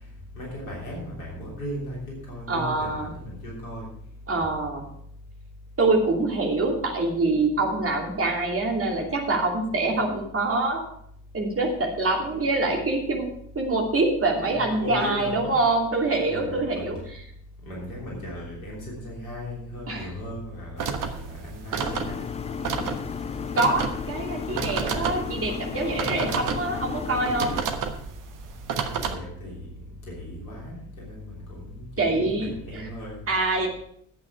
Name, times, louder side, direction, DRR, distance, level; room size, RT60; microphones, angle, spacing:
voice 1, 0.3-2.0 2.3-3.9 14.4-15.6 16.1-16.9 17.7-22.2 29.1-29.6 30.1-31.3 31.6-33.1, equal, 75° left, -4 dB, 3.4 m, -37 dB
voice 2, 2.5-3.1 4.3-4.8 5.8-10.9 11.3-13.2 13.5-17.0 19.9-20.1 23.5-27.6 32.0-32.9 33.3-33.7, right 2 dB, 30° right, 0 dB, 2.7 m, -25 dB
sound 1, 20.8-29.2, right 6 dB, 50° right, 1.2 m, -31 dB
sound 2, 21.8-27.6, left 7 dB, 15° left, 0.3 m, -33 dB
10.5 x 8.5 x 4.8 m, 0.68 s
figure-of-eight pair, 40°, 42 cm